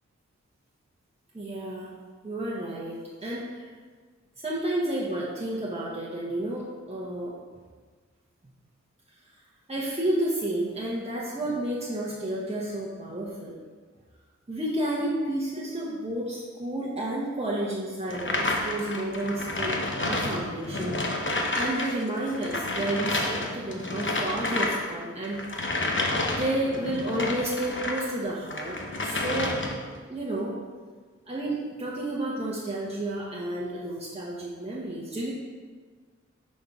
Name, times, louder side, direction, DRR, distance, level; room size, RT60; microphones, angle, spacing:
voice 1, 1.3-1.9 2.2-3.7 4.4-7.4 9.7-13.6 14.5-25.4 26.3-29.6 30.1-30.6 31.3-35.3, right 1 dB, 20° right, -5 dB, 0.9 m, -31 dB
sound 1, 18.1-21.9 22.2-28.1 28.5-29.9, left 2 dB, 40° left, 0.8 m, -30 dB
5.5 x 5.4 x 3.6 m, 1.5 s
wide cardioid pair, 50°, 30 cm